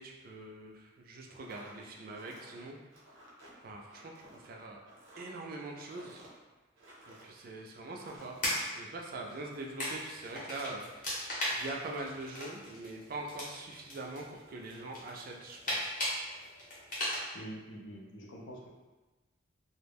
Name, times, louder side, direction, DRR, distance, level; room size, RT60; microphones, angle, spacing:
voice 1, 0.0-2.8 3.6-4.8 5.2-6.2 7.1-8.4 8.7-16.0, right 2 dB, 45° right, 0 dB, 0.3 m, -43 dB
sound 1, 1.3-7.4 7.8-8.4, right 1 dB, 85° right, 0.8 m, -55 dB
sound 2, 8.2-17.2, equal, 40° left, 0.8 m, -38 dB
voice 2, 17.3-18.7, right 1 dB, 75° left, -2 dB, 0.5 m, -45 dB
2.3 x 2.1 x 3.3 m, 1.2 s
head